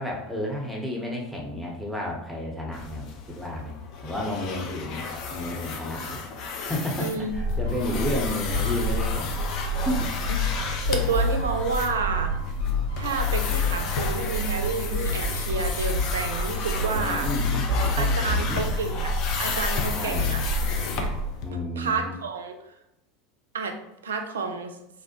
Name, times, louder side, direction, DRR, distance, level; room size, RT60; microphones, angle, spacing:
voice 1, 0.0-3.8 4.0-5.1 5.3-6.2 6.6-9.4 9.7-10.1 10.6-10.7 16.9-17.6 17.9-18.6 19.9-20.3 21.4-22.2, left 1 dB, ahead, -1 dB, 0.7 m, -32 dB
sound 1, 2.7-21.5, left 5 dB, 55° left, 0.4 m, -34 dB
voice 2, 7.0-7.3 8.0-8.3 10.3-10.4 10.9-12.3 13.0-17.3 18.0-19.1 19.4-20.4 21.0-21.1 21.8-22.6 23.5-24.8, right 4 dB, 80° right, 5 dB, 0.3 m, -30 dB
sound 2, 7.3-21.2, left 1 dB, 85° left, 0.8 m, -28 dB
2.5 x 2.0 x 2.7 m, 0.84 s
hypercardioid pair, 80°, 0 cm